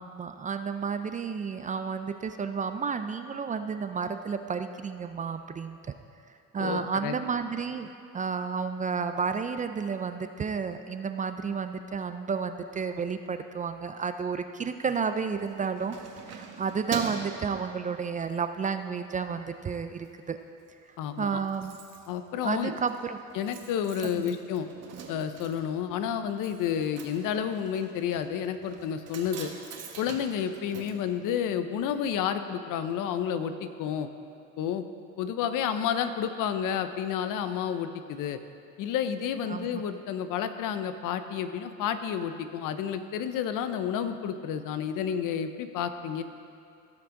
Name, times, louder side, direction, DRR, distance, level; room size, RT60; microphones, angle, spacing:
voice 1, 0.0-5.8 6.5-16.0 16.3-20.4 21.2-21.8 22.4-23.2 24.1-24.4 39.5-39.8, right 5 dB, 25° right, 9 dB, 0.4 m, -31 dB
voice 2, 6.6-7.2 21.0-21.4 22.1-22.7 23.3-24.7 25.1-29.5 30.0-34.1 34.6-34.9 35.2-38.4 38.8-46.2, left 8 dB, 70° left, 10 dB, 0.7 m, -30 dB
Keys jangling, 15.3-18.4 18.8-19.1 19.4-20.1 20.4-20.5 20.7-20.8 21.0-31.8 32.1-32.2, right 6 dB, 50° right, 1.2 m, -43 dB
17.0 x 6.0 x 3.8 m, 2.5 s
cardioid pair, 110°, 33 cm